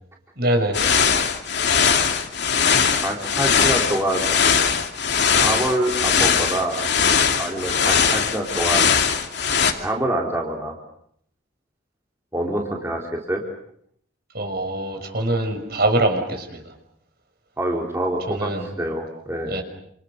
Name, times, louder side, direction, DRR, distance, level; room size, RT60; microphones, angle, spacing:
voice 1, 0.4-0.8 1.8-1.9 14.3-16.7 18.3-18.7 19.5-19.6, right 1 dB, 50° right, 7 dB, 6.0 m, -23 dB
sound 1, 0.7-9.7, left 6 dB, 55° left, 2.7 m, -20 dB
voice 2, 2.9-4.4 5.4-6.9 7.4-8.9 9.8-10.7 12.3-13.4 17.6-19.6, right 1 dB, 15° right, 0 dB, 3.7 m, -26 dB
29.5 x 27.5 x 6.7 m, 0.70 s
head